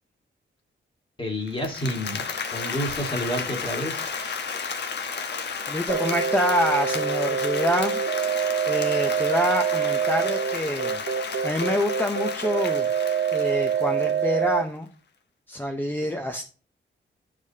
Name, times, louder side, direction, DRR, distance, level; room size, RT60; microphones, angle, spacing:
voice 1, 1.2-2.2 2.5-4.1, equal, 25° left, 2 dB, 1.9 m, -29 dB
Applause, 1.5-14.5, left 5 dB, 60° left, 1.0 m, -33 dB
voice 2, 5.7-8.0 8.7-11.0 11.4-12.9 13.3-14.9 15.5-16.4, left 1 dB, 10° left, 4 dB, 0.6 m, -26 dB
sound 1, 5.9-14.6, right 8 dB, 90° right, 0.7 m, -26 dB
11.5 x 5.0 x 2.7 m, 0.39 s
wide cardioid pair, 135°, 20 cm